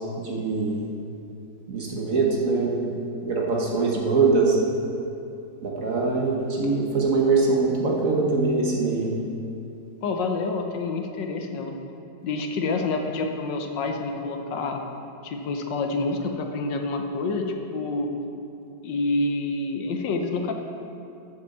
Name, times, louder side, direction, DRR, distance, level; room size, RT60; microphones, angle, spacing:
voice 1, 0.2-0.8 1.7-2.7 3.2-4.6 5.6-9.1, right 4 dB, 50° right, -1 dB, 1.5 m, -23 dB
voice 2, 10.0-11.8 12.2-14.8 15.2-18.1 18.8-20.5, left 3 dB, 70° left, 4 dB, 1.4 m, -28 dB
8.0 x 6.8 x 7.1 m, 2.7 s
omnidirectional pair, 2.1 m